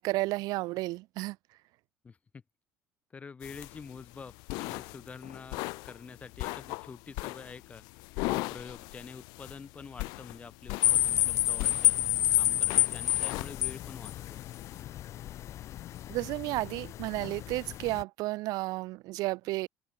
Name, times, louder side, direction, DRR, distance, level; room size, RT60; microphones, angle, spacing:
voice 1, 0.0-1.4 16.1-19.7, right 20 dB, 70° right, 0.7 m, -32 dB
voice 2, 2.0-2.4 3.1-7.8 8.2-11.9 12.3-14.4, left 5 dB, 20° left, 1.2 m, -47 dB
sound 1, 3.4-14.8, left 26 dB, 90° left, 0.8 m, -40 dB
sound 2, 10.8-18.0, left 13 dB, 45° left, 0.5 m, -29 dB
open air
cardioid pair, 155°, 7 cm